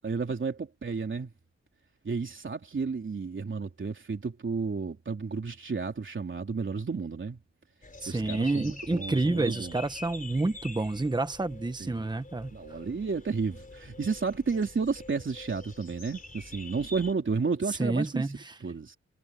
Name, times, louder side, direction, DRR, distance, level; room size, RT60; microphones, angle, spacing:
voice 1, 0.0-1.3 2.0-7.4 8.1-9.8 11.8-12.1 12.5-18.2 18.6-19.0, right 4 dB, 40° right, 3.5 m, -32 dB
sound 1, 7.8-17.1, left 2 dB, 30° left, 3.8 m, -46 dB
voice 2, 8.0-12.5 17.7-18.6, right 2 dB, 15° right, 1.2 m, -29 dB
wide cardioid pair, 120°, 29 cm